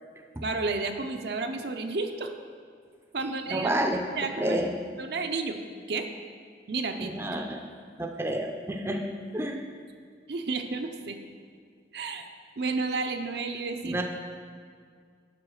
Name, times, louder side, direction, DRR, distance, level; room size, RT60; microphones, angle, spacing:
voice 1, 0.4-2.3 3.1-3.7 4.2-4.6 5.0-5.6 5.9-6.1 6.7-7.1 10.3-11.2 11.9-12.2 12.6-14.0, right 3 dB, 65° right, 5 dB, 0.6 m, -31 dB
voice 2, 3.2-4.7 7.0-7.7 8.0-9.6 13.8-14.0, right 1 dB, 15° right, 2 dB, 0.5 m, -30 dB
7.7 x 5.6 x 6.3 m, 2.1 s
head